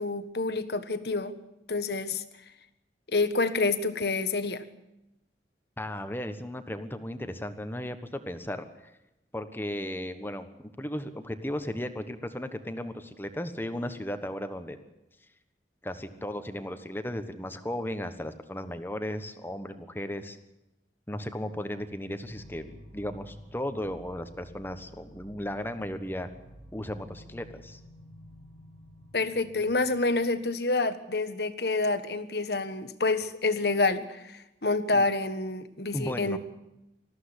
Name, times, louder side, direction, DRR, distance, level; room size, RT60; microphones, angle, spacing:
voice 1, 0.0-1.3 1.7-2.2 3.1-4.6 29.1-36.4, left 3 dB, 65° left, 11 dB, 1.5 m, -28 dB
voice 2, 5.8-8.9 9.3-14.8 15.8-20.4 21.1-26.3 26.7-27.8 34.9-35.1 35.9-36.4, left 1 dB, 10° left, 9 dB, 1.2 m, -35 dB
sound 1, 22.2-30.4, equal, 70° right, 7.3 m, -51 dB
20.0 x 14.5 x 9.8 m, 0.91 s
head